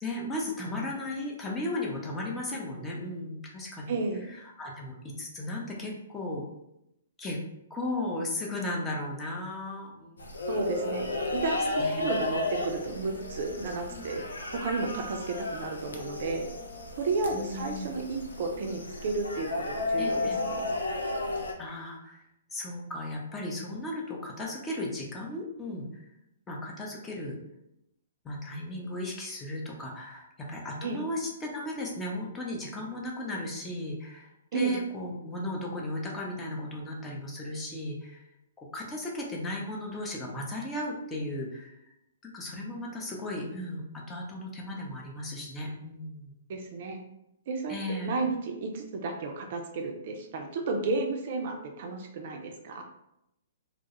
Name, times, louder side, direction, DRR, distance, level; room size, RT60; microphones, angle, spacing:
voice 1, 0.0-3.8 4.6-6.4 7.2-7.4 7.7-10.5 11.8-12.0 13.9-14.1 17.3-17.9 20.0-20.4 21.6-22.3 22.5-26.1 26.5-27.4 28.2-38.2 38.6-41.7 42.2-46.3 47.7-48.2, left 1 dB, 15° left, -2 dB, 0.6 m, -36 dB
voice 2, 3.9-4.3 10.5-14.2 14.5-16.4 17.0-20.7 30.8-31.0 34.5-34.8 46.5-47.0 47.5-52.8, right 3 dB, 50° right, 3 dB, 0.3 m, -32 dB
sound 1, 10.2-21.5, left 2 dB, 75° left, 0.4 m, -33 dB
2.2 x 2.0 x 2.8 m, 0.83 s
figure-of-eight pair, 120°, 0 cm